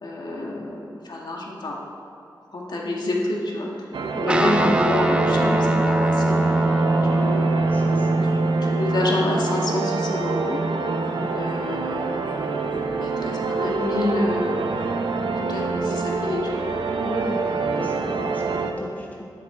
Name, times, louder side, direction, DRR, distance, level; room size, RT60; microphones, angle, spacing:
voice 1, 0.0-1.8 2.5-3.9 4.2-6.4 7.1-7.3 8.4-10.6 11.4-12.2 13.0-14.7 15.5-16.7, left 2 dB, 65° left, -2 dB, 2.0 m, -27 dB
sound 1, 3.9-18.7, right 4 dB, 90° right, 0.8 m, -26 dB
Guitar, 4.3-11.9, right 2 dB, 15° right, 0.6 m, -23 dB
voice 2, 7.2-8.4 11.1-11.4 17.0-19.3, left 1 dB, 20° left, -1 dB, 1.1 m, -34 dB
11.5 x 10.5 x 4.6 m, 2.6 s
wide cardioid pair, 135°, 8 cm